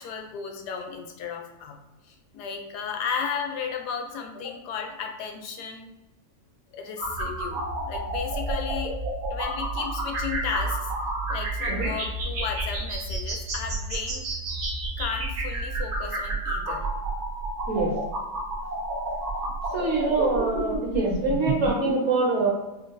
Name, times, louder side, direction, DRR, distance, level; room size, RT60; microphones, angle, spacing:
voice 1, 0.0-1.8 2.0-5.9 6.7-8.9 9.3-10.9 11.3-14.3 15.0-16.8 19.8-20.1, left 6 dB, 80° left, 3 dB, 1.2 m, -34 dB
sound 1, 7.0-21.9, right 2 dB, 65° right, 1.4 m, -30 dB
voice 2, 19.7-22.5, right 3 dB, 45° right, -4 dB, 1.5 m, -25 dB
5.7 x 2.4 x 2.6 m, 1.0 s
omnidirectional pair, 1.7 m